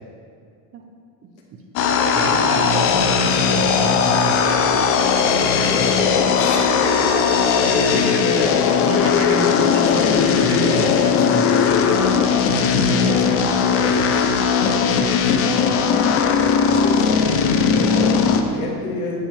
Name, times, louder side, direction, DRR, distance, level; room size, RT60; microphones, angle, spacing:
voice 1, 1.2-1.6 2.2-4.8 7.8-11.6 15.7-16.0, right 4 dB, 30° right, 3 dB, 0.5 m, -30 dB
sound 1, 1.8-18.4, left 6 dB, 30° left, 0.4 m, -18 dB
voice 2, 2.0-2.4 5.6-6.8 12.9-14.1 15.1-15.4 16.4-19.2, left 3 dB, 60° left, -1 dB, 1.6 m, -31 dB
9.2 x 6.3 x 3.2 m, 2.3 s
supercardioid pair, 135°, 46 cm